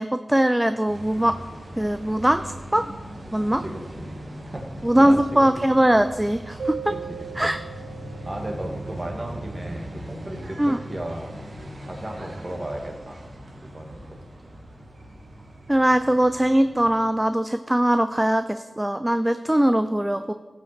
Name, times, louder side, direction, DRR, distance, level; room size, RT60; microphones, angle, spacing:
voice 1, 0.0-1.3 1.8-2.9 3.3-3.6 4.8-6.8 7.4-7.6 10.6-10.8 15.7-20.3, right 1 dB, 10° right, 10 dB, 0.4 m, -21 dB
sound 1, 0.9-16.9, right 1 dB, 60° right, 2.1 m, -40 dB
voice 2, 3.5-4.2 4.4-5.5 6.9-7.2 7.4-7.6 8.2-11.4 11.8-13.2 13.7-14.2, right 1 dB, 30° right, 1 dB, 1.9 m, -35 dB
Keyboard (musical), 6.6-9.3, right 6 dB, 85° right, 1.1 m, -37 dB
16.0 x 5.7 x 4.4 m, 1.4 s
wide cardioid pair, 95°, 0 cm